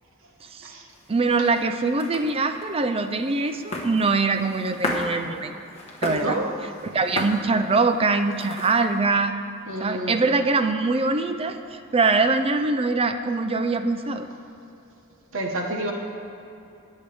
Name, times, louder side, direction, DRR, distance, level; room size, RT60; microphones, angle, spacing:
sound 1, 0.9-9.0, left 1 dB, 30° left, 1.3 m, -35 dB
voice 1, 1.1-5.5 6.0-6.4 6.9-9.3 9.8-14.3, right 3 dB, 25° right, 8 dB, 0.5 m, -23 dB
voice 2, 6.1-6.5 9.7-10.1 15.3-15.9, right 1 dB, 65° right, 1 dB, 1.3 m, -29 dB
19.0 x 6.6 x 3.4 m, 2.7 s
head